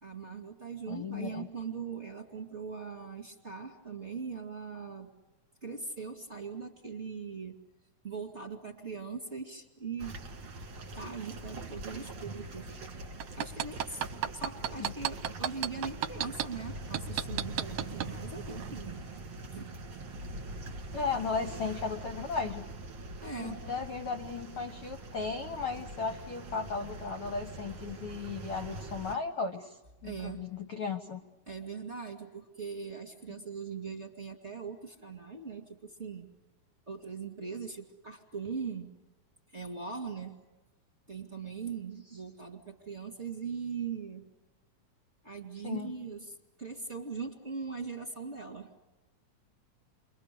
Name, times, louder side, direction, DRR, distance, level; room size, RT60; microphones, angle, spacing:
voice 1, 0.0-5.1 5.6-7.6 8.0-10.1 10.9-12.7 13.4-14.0 14.3-19.0 19.5-20.0 23.2-23.6 30.0-30.4 31.5-36.3 36.9-38.9 39.5-40.4 41.1-44.2 45.2-48.7, right 5 dB, 25° right, 3 dB, 1.8 m, -40 dB
voice 2, 0.9-1.5 14.8-14.9 20.9-22.7 23.4-31.2 45.6-45.9, left 4 dB, 60° left, 6 dB, 1.4 m, -35 dB
sound 1, 10.0-29.1, right 2 dB, 50° right, 1.8 m, -43 dB
sound 2, 13.2-16.5 16.9-18.1 18.6-18.7, right 11 dB, 70° right, 1.8 m, -31 dB
29.5 x 23.0 x 6.8 m, 1.1 s
omnidirectional pair, 4.1 m